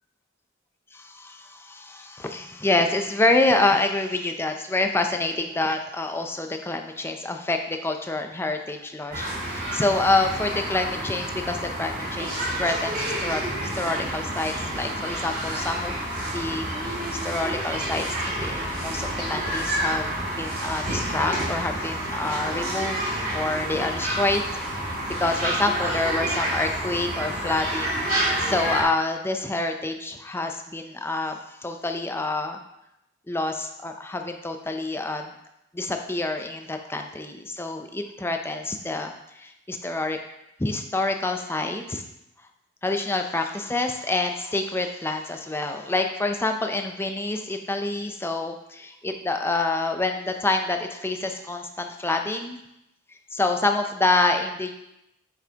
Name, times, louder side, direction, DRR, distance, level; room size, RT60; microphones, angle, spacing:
voice 1, 0.9-15.9 16.3-17.0 17.2-24.5 24.8-32.6 33.3-35.3 35.7-40.2 40.6-42.0 42.8-52.6 53.3-54.7, left 2 dB, 10° left, 5 dB, 0.5 m, -27 dB
sound 1, 9.1-28.8, right 1 dB, 50° right, 2.7 m, -29 dB
7.2 x 6.9 x 2.9 m, 0.85 s
head